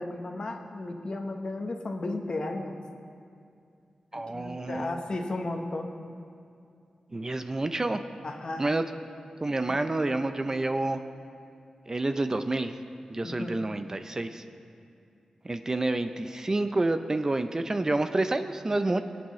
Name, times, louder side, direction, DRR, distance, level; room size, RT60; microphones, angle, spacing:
voice 1, 0.0-2.7 4.1-5.9 8.2-8.6 9.6-9.8 13.2-13.5, left 2 dB, 50° left, 3 dB, 1.1 m, -34 dB
voice 2, 4.1-5.0 7.1-8.0 8.6-8.8 9.4-11.0 11.9-12.7 13.1-14.4 15.4-19.0, right 2 dB, 30° right, 8 dB, 0.5 m, -28 dB
22.5 x 8.9 x 3.2 m, 2.4 s
wide cardioid pair, 90°, 2 cm